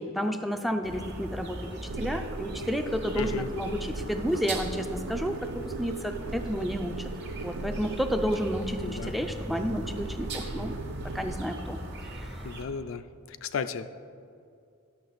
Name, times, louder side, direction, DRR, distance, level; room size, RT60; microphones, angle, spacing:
voice 1, 0.0-7.1 7.4-10.7 11.0-11.8 12.2-12.3, equal, ahead, 6 dB, 0.4 m, -31 dB
sound 1, 0.8-12.6, right 1 dB, 55° right, 1.1 m, -39 dB
sound 2, 1.9-11.4, right 3 dB, 75° right, 0.4 m, -38 dB
voice 2, 3.2-3.5 8.8-9.1 12.4-13.0 13.4-13.9, left 5 dB, 65° left, 12 dB, 0.4 m, -34 dB
11.0 x 6.6 x 4.0 m, 2.4 s
head